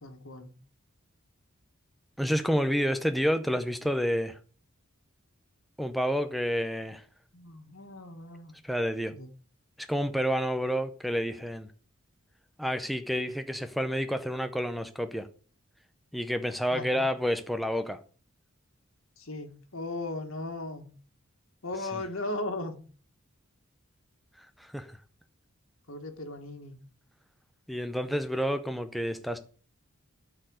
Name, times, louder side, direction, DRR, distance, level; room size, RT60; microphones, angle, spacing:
voice 1, 0.0-0.5 7.3-8.5 9.1-9.3 16.7-17.1 19.2-20.9 21.6-22.8 25.9-26.8, left 2 dB, 70° left, 1.8 m, -37 dB
voice 2, 2.2-4.4 5.8-7.0 8.6-9.1 9.9-11.7 12.6-15.3 16.1-18.0 21.9-22.0 24.4-25.0 27.7-29.4, equal, ahead, 0.6 m, -29 dB
12.5 x 4.7 x 6.4 m
head